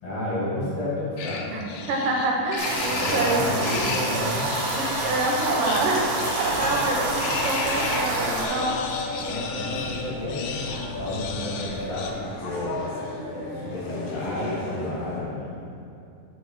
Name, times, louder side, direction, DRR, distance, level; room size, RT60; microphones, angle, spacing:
voice 1, 0.0-1.5 2.9-4.4 9.2-12.8 13.3-15.6, left 1 dB, 50° left, -8 dB, 2.7 m, -31 dB
Robotic Arm, 1.2-8.1 8.4-12.1, left 5 dB, 90° left, 1.7 m, -34 dB
voice 2, 1.9-3.4 4.7-8.8, right 2 dB, 75° right, -1 dB, 2.2 m, -26 dB
sound 1, 2.6-8.4, right 2 dB, 60° right, 2.3 m, -28 dB
sound 2, 6.4-15.2, left 2 dB, 70° left, 2.6 m, -34 dB
6.8 x 5.2 x 4.6 m, 2.5 s
omnidirectional pair, 4.0 m